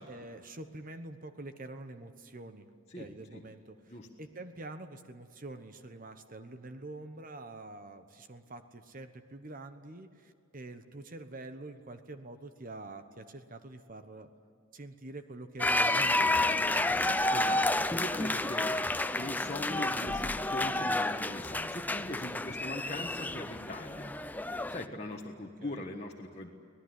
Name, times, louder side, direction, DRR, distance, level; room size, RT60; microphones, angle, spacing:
voice 1, 0.1-2.7 3.0-14.3 14.7-17.1 25.6-25.8, right 2 dB, 40° right, 9 dB, 1.1 m, -46 dB
voice 2, 2.9-3.4 3.9-4.1 17.3-18.7 19.2-24.1 24.7-26.5, left 1 dB, 30° left, -1 dB, 1.5 m, -41 dB
sound 1, 15.6-24.8, left 2 dB, 10° left, 0.5 m, -30 dB
25.5 x 18.5 x 9.6 m, 2.4 s
head